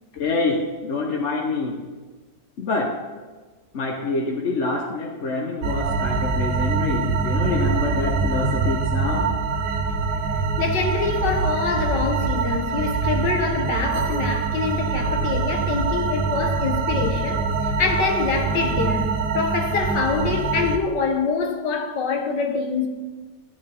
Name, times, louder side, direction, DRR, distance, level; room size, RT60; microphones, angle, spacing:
voice 1, 0.2-1.8 2.6-3.0 3.7-9.3, left 3 dB, 50° left, 1.1 m, -26 dB
sound 1, 5.6-20.8, right 4 dB, 70° right, 1.4 m, -24 dB
voice 2, 10.6-22.9, left 5 dB, 80° left, 1.7 m, -25 dB
14.5 x 9.2 x 3.4 m
omnidirectional pair, 1.9 m